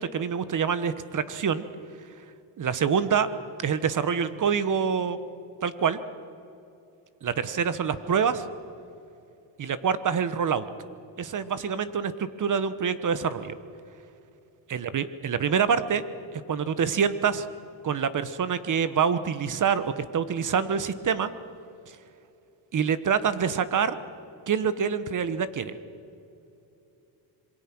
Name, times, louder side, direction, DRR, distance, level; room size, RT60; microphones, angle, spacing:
voice 1, 0.0-1.6 2.6-3.3 3.6-5.2 5.6-6.0 7.2-8.4 9.6-10.7 11.2-13.5 14.7-16.0 16.3-17.5 17.8-21.3 22.7-23.9 24.5-25.7, right 7 dB, 45° right, 13 dB, 1.2 m, -26 dB
26.5 x 22.5 x 6.1 m, 2.7 s
cardioid pair, 115°, 45 cm